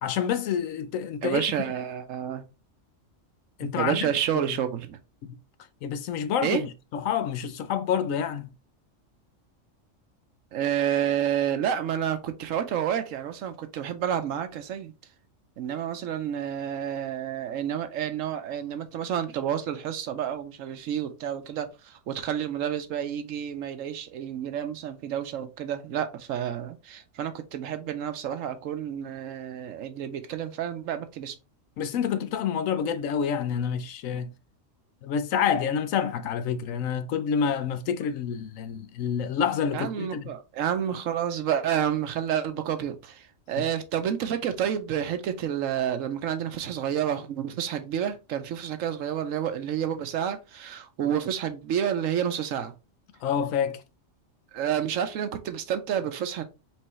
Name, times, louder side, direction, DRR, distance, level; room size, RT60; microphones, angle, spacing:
voice 1, 0.0-1.4 3.6-4.1 4.3-4.5 5.8-8.5 31.8-34.3 35.0-40.3 43.6-43.7 53.2-53.8, left 7 dB, 80° left, 1.0 m, -28 dB
voice 2, 1.2-2.4 3.8-5.0 6.4-6.6 10.5-14.9 15.6-31.4 39.7-52.7 54.5-56.4, right 9 dB, 80° right, 1.0 m, -29 dB
4.6 x 3.4 x 3.0 m
omnidirectional pair, 1.4 m